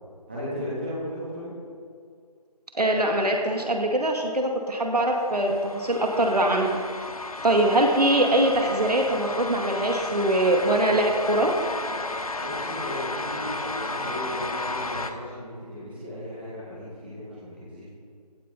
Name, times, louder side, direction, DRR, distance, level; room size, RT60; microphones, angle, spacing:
voice 1, 0.3-1.5 12.4-17.9, left 1 dB, 15° right, -10 dB, 3.0 m, -36 dB
voice 2, 2.7-6.8 7.4-11.5, right 1 dB, 70° right, 2 dB, 1.9 m, -23 dB
sound 1, 5.0-15.1, left 2 dB, 60° left, 1.0 m, -33 dB
16.5 x 9.2 x 4.3 m, 2.2 s
figure-of-eight pair, 180°, 21 cm